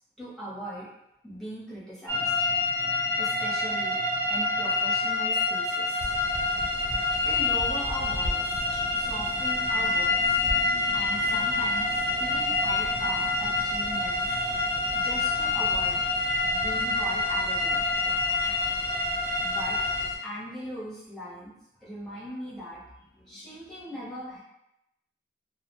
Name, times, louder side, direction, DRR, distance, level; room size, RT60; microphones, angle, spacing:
voice 1, 0.2-0.9 1.2-2.3 3.2-4.0 4.3-6.1 6.7-8.6 8.9-10.4 10.7-14.4 14.9-16.0 16.5-17.8 18.3-18.4 19.4-19.8 20.2-21.5 21.8-24.4, equal, 5° left, -9 dB, 0.8 m, -40 dB
sound 1, 2.1-20.1, left 2 dB, 85° right, 0.8 m, -27 dB
sound 2, 6.0-20.2, left 1 dB, 80° left, 0.8 m, -41 dB
2.3 x 2.1 x 2.9 m, 0.85 s
head